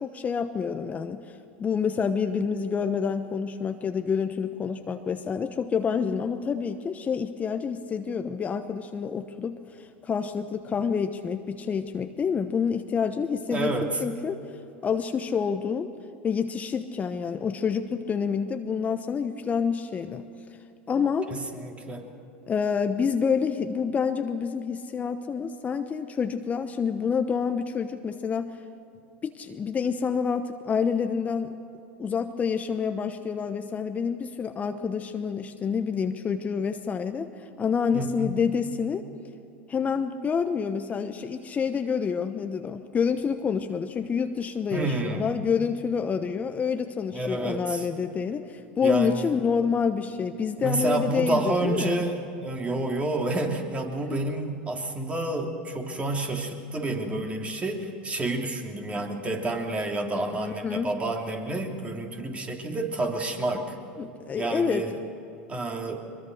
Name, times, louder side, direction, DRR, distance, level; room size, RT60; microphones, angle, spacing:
voice 1, 0.0-13.7 14.0-14.4 14.8-15.9 16.2-20.2 20.9-21.3 22.5-28.6 29.2-31.6 32.0-39.0 39.7-52.0 54.1-54.2 60.3-60.9 64.0-64.8, left 6 dB, 25° left, 8 dB, 1.0 m, -28 dB
voice 2, 13.5-13.9 21.3-22.1 37.9-38.3 44.7-45.3 47.1-47.9 48.8-49.4 50.6-63.7 64.4-65.0 65.5-66.0, right 2 dB, 20° right, 2 dB, 3.1 m, -29 dB
23.0 x 22.0 x 6.4 m, 2.8 s
hypercardioid pair, 90°, 6 cm